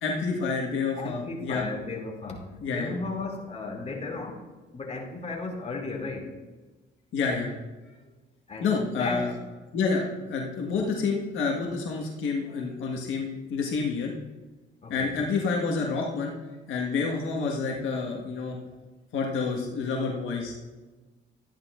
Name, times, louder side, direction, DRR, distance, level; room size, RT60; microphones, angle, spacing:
voice 1, 0.0-1.7 2.6-2.9 7.1-7.5 7.9-8.0 8.6-9.3 9.7-14.1 14.9-16.3 16.7-18.6 19.1-20.5, left 4 dB, 80° left, -1 dB, 1.6 m, -28 dB
voice 2, 1.0-4.4 4.7-6.3 8.5-9.3 14.8-15.2, left 3 dB, 35° left, -1 dB, 2.6 m, -35 dB
12.5 x 10.5 x 2.5 m, 1.2 s
cardioid pair, 90°, 20 cm